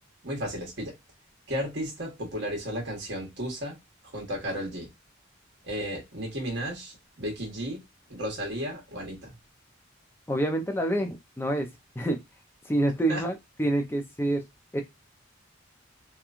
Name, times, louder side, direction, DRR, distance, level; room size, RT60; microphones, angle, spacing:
voice 1, 0.2-0.9 1.5-3.8 4.1-4.9 5.6-7.8 8.1-9.3 13.1-13.2, equal, 55° right, 1.1 m, -33 dB
voice 2, 10.3-11.7 12.0-12.2 12.7-14.5 14.7-14.8, right 1 dB, 10° left, 0.4 m, -27 dB
2.9 x 2.3 x 2.4 m
head